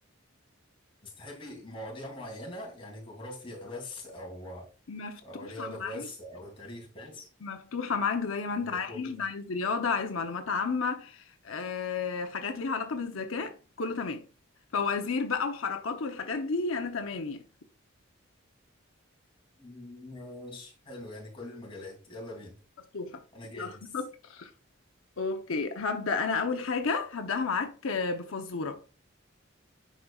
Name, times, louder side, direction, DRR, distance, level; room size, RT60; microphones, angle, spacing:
voice 1, 1.0-4.7 5.2-7.3 8.6-9.1 19.6-22.6 23.3-23.9, left 1 dB, 25° left, 2.7 m, -42 dB
voice 2, 4.9-6.1 7.4-14.2 14.7-17.4 22.9-23.2 23.5-24.5 25.2-28.8, left 4 dB, 85° left, 0.8 m, -32 dB
10.0 x 5.1 x 2.4 m
head